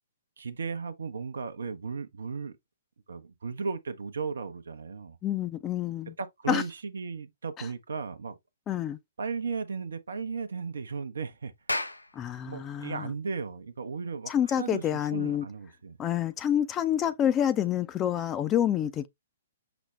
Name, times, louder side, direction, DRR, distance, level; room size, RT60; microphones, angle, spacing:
voice 1, 0.4-2.5 3.1-5.2 6.2-8.3 9.2-11.5 12.4-16.0, right 5 dB, 70° right, 0.6 m, -35 dB
voice 2, 5.2-6.1 6.5-6.6 7.6-7.7 8.7-9.0 12.1-13.1 14.3-15.5 16.0-19.1, left 10 dB, 20° left, 0.4 m, -28 dB
Clapping, 11.5-16.4, left 1 dB, 90° left, 0.4 m, -39 dB
6.0 x 2.1 x 3.1 m
figure-of-eight pair, 120°, 0 cm